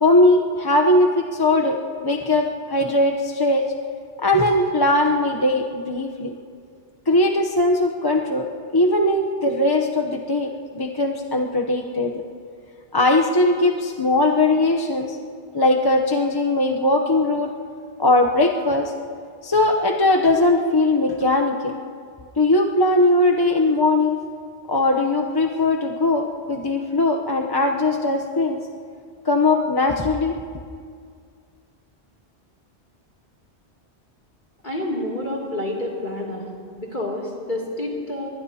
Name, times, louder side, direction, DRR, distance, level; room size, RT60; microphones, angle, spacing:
voice 1, 0.0-3.7 4.2-6.3 7.1-12.2 12.9-15.2 15.5-17.5 18.0-18.9 19.4-21.8 22.4-24.2 24.7-28.6 29.2-30.3, left 2 dB, 25° left, 2 dB, 0.7 m, -20 dB
voice 2, 34.6-36.5 36.8-38.3, left 1 dB, 45° left, -3 dB, 2.9 m, -28 dB
23.5 x 20.0 x 2.8 m, 2.1 s
omnidirectional pair, 1.1 m